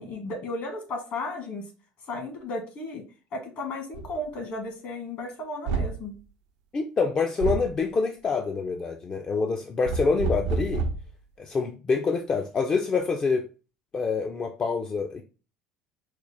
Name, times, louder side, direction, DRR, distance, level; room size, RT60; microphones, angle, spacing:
voice 1, 0.0-1.7 2.0-3.0 3.3-6.1, left 2 dB, 55° left, 1.4 m, -34 dB
sound 1, 3.9-4.1 5.7-6.0 7.4-7.7 9.8-11.1, right 4 dB, 85° right, 0.5 m, -28 dB
voice 2, 6.7-10.8 11.4-13.5 13.9-15.2, left 4 dB, 30° left, 0.4 m, -26 dB
4.7 x 2.0 x 3.3 m
supercardioid pair, 90°, 3 cm